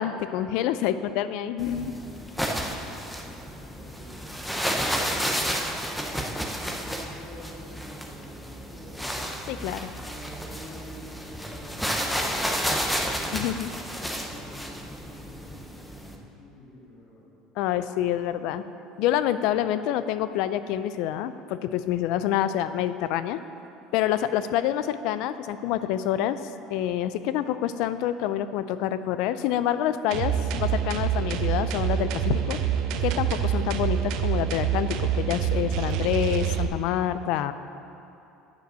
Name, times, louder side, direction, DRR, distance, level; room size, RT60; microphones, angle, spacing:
voice 1, 0.0-1.9 9.5-9.9 13.3-13.7 17.6-18.6 19.0-23.4 23.9-26.4 26.7-32.6 33.0-37.5, left 11 dB, 65° left, 13 dB, 0.4 m, -27 dB
voice 2, 0.7-1.0 1.6-2.0 2.4-4.3 4.8-9.3 9.9-13.2 13.6-17.2 21.9-22.3 24.1-24.3, left 1 dB, 35° left, -6 dB, 2.0 m, -47 dB
sound 1, 1.6-16.1, equal, 5° left, 0.7 m, -31 dB
sound 2, 30.1-36.7, right 9 dB, 65° right, 0.5 m, -26 dB
9.3 x 5.2 x 6.2 m, 2.9 s
cardioid pair, 145°, 0 cm